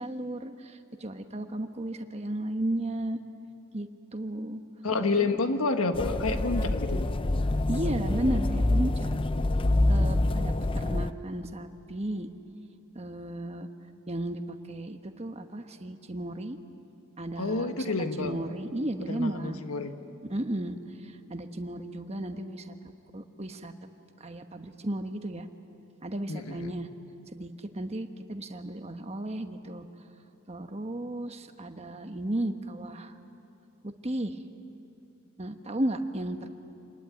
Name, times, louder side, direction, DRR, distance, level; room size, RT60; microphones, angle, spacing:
voice 1, 0.0-3.2 3.7-4.6 5.0-5.4 7.7-9.2 9.9-12.3 12.9-13.7 14.1-16.6 17.2-17.9 18.2-19.6 20.3-20.8 21.3-22.8 23.1-23.7 24.2-25.5 26.0-26.9 27.3-29.8 30.5-33.1 33.8-34.4 35.4-36.5, right 1 dB, 30° right, 7 dB, 1.1 m, -34 dB
voice 2, 4.8-7.1 9.9-10.2 17.4-18.4 19.1-19.9 26.3-26.8, left 3 dB, 80° left, 7 dB, 1.4 m, -29 dB
sound 1, 5.9-11.1, left 2 dB, 25° left, 0.5 m, -26 dB
27.0 x 20.0 x 9.4 m, 2.8 s
head